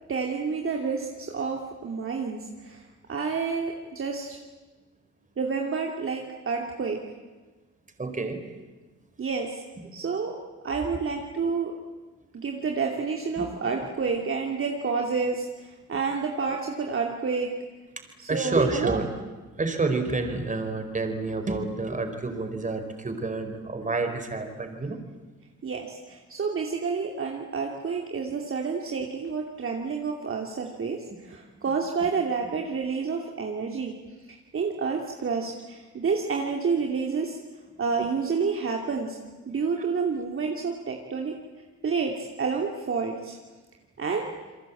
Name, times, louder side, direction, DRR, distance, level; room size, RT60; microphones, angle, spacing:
voice 1, 0.1-2.8 3.1-4.4 5.4-7.0 9.2-9.6 9.9-10.3 10.6-11.7 12.3-17.5 18.2-19.0 25.6-34.0 34.3-37.4 37.8-39.2 39.5-41.4 41.8-43.4 44.0-44.3, right 5 dB, 45° right, 1 dB, 2.9 m, -29 dB
voice 2, 8.0-8.4 13.4-13.5 18.3-19.1 19.6-25.0, right 3 dB, 25° right, 6 dB, 4.7 m, -28 dB
28.5 x 22.0 x 8.7 m, 1.3 s
cardioid pair, 90°, 30 cm